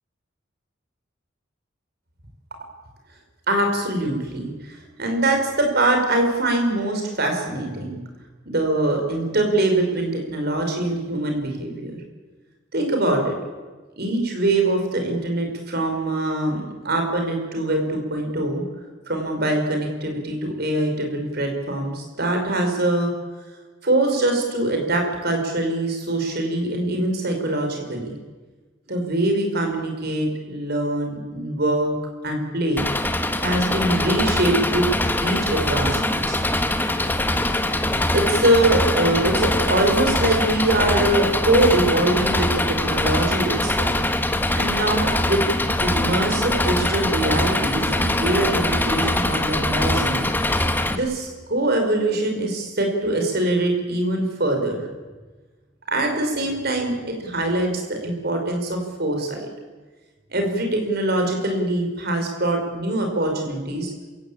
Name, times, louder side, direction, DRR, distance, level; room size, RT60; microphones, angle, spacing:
voice 1, 3.5-8.0 8.5-11.9 12.7-13.4 14.0-18.6 19.1-23.1 23.8-28.1 28.9-31.9 32.2-32.9 33.4-34.9 35.2-36.4 38.1-43.9 44.6-45.4 45.8-50.2 50.9-54.9 55.9-59.5 60.3-63.9, right 1 dB, 55° right, 3 dB, 5.2 m, -23 dB
Engine, 32.8-51.0, left 1 dB, 10° left, 1.3 m, -22 dB
27.0 x 16.0 x 8.8 m, 1.3 s
head